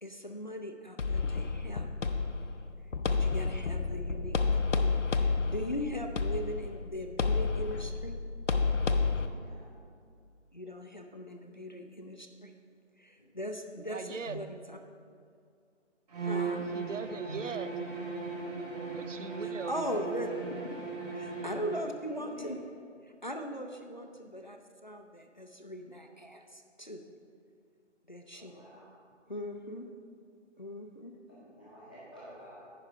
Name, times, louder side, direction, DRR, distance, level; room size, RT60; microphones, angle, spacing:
voice 1, 0.0-2.2 3.1-8.2 10.5-12.5 13.0-14.8 16.2-16.7 19.4-22.6 23.0-27.0 28.1-28.6 29.3-29.9 30.6-31.1, equal, 40° left, 4 dB, 0.4 m, -40 dB
sound 1, 1.0-9.3, left 4 dB, 75° left, 0.7 m, -30 dB
voice 2, 9.3-9.7 13.2-13.3 14.2-14.4 17.2-17.4 21.4-21.5 22.1-22.5 28.3-28.9 31.3-32.6, right 1 dB, 5° left, -11 dB, 0.8 m, -49 dB
voice 3, 13.8-14.4 16.7-17.7 18.8-19.8, right 5 dB, 75° right, 11 dB, 0.6 m, -40 dB
Bowed string instrument, 16.1-21.9, right 4 dB, 30° right, 2.1 m, -37 dB
9.9 x 4.8 x 5.5 m, 2.2 s
figure-of-eight pair, 160°, 37 cm